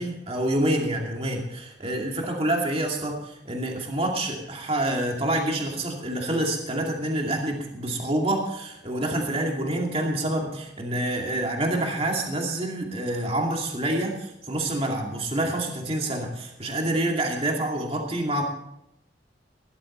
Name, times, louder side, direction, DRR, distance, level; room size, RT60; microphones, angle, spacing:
voice 1, 0.0-18.4, right 1 dB, 35° right, 1 dB, 2.5 m, -27 dB
17.5 x 12.0 x 4.3 m, 0.83 s
head